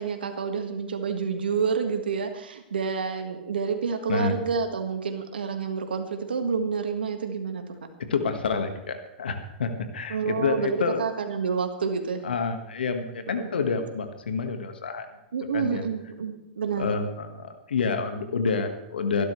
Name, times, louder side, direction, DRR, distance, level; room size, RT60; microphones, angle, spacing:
voice 1, 0.0-7.7 10.1-12.2 13.3-13.5 15.3-16.9, right 6 dB, 85° right, 6 dB, 1.7 m, -29 dB
voice 2, 8.0-11.0 12.2-15.0 15.5-15.8 16.8-19.2, left 5 dB, 85° left, 7 dB, 1.6 m, -28 dB
23.0 x 12.0 x 3.2 m, 0.92 s
hypercardioid pair, 115°, 5 cm